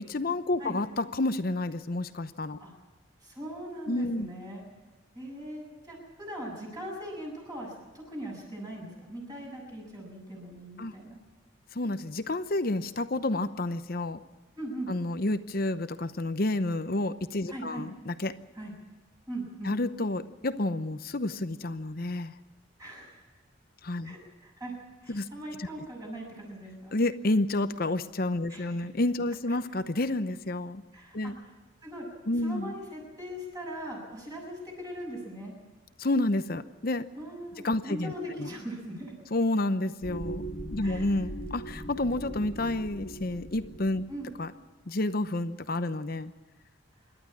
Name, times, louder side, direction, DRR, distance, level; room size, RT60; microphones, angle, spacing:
voice 1, 0.0-2.6 3.9-4.3 10.8-10.9 11.7-14.2 14.9-18.4 19.6-22.3 23.8-24.1 25.1-25.3 25.6-25.7 26.9-30.8 31.1-31.4 32.3-32.7 36.0-37.1 37.6-38.1 38.4-38.5 39.3-40.4 40.7-44.0 44.4-44.5 44.9-46.3, left 2 dB, 50° left, 11 dB, 0.8 m, -30 dB
voice 2, 3.2-4.6 5.2-11.2 14.6-14.9 17.5-17.9 18.6-18.7 19.3-19.7 22.8-23.2 24.0-26.9 28.5-28.9 30.9-31.5 31.8-32.1 32.4-35.5 37.2-39.1 40.8-41.1 44.1-44.3, right 1 dB, 20° right, -2 dB, 7.0 m, -40 dB
sound 1, 40.0-44.5, right 1 dB, 80° left, 2.2 m, -40 dB
27.0 x 12.0 x 8.6 m, 1.3 s
head